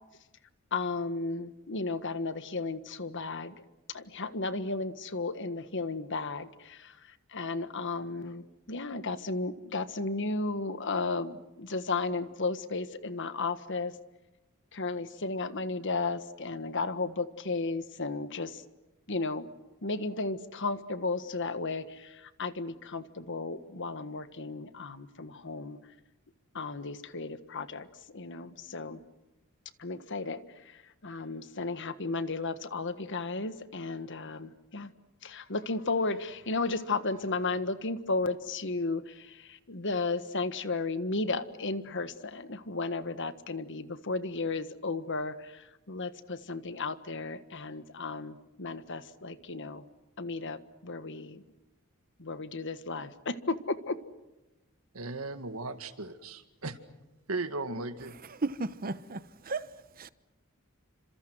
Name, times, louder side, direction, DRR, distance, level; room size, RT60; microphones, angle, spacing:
voice 1, 0.7-3.5 3.9-7.0 7.3-13.9 14.7-18.6 19.1-19.5 19.8-25.8 26.5-29.0 29.8-34.9 35.2-49.8 50.2-51.4 52.2-54.0, left 3 dB, 60° left, 1.6 m, -34 dB
voice 2, 54.9-56.8 57.3-58.2, right 3 dB, 85° right, 2.1 m, -36 dB
voice 3, 58.3-60.1, right 3 dB, 45° right, 1.0 m, -35 dB
30.0 x 27.0 x 6.3 m
head